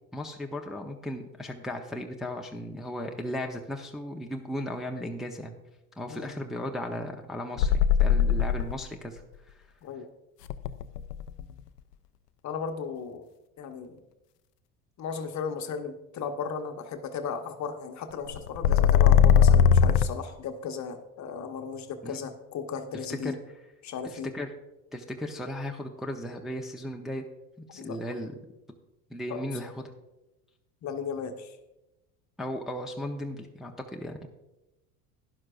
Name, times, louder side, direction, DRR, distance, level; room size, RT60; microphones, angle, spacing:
voice 1, 0.1-5.5 6.0-9.2 9.5-9.6 22.0-22.3 23.2-23.3 24.0-24.5 24.9-27.2 27.7-28.4 29.1-29.9 32.4-34.3, left 1 dB, ahead, 1 dB, 0.8 m, -36 dB
sound 1, 7.6-8.8 10.5-11.4 18.3-20.1, left 8 dB, 85° left, 0.6 m, -19 dB
voice 2, 9.8-10.1 12.4-13.3 13.6-14.0 15.0-23.3 23.8-24.3 27.7-28.0 29.3-29.5 30.8-31.6, left 6 dB, 35° left, 6 dB, 1.1 m, -36 dB
12.0 x 11.0 x 2.5 m, 0.97 s
hypercardioid pair, 70°, 46 cm